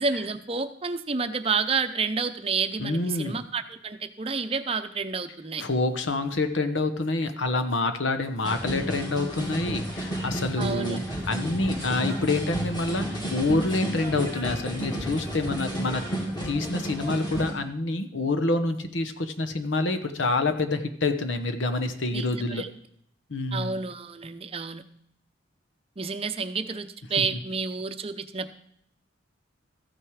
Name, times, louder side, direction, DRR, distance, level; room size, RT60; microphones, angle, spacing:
voice 1, 0.0-5.6 10.6-11.0 22.1-22.7 23.5-24.8 26.0-28.5, right 4 dB, 30° right, 9 dB, 0.6 m, -30 dB
voice 2, 2.8-3.4 5.6-11.0 11.3-16.0 16.4-22.6 23.3-23.7 27.2-27.3, left 2 dB, 80° left, 9 dB, 1.1 m, -27 dB
sound 1, 8.4-17.5, right 1 dB, 25° left, 2.6 m, -32 dB
14.0 x 9.1 x 4.8 m, 0.68 s
head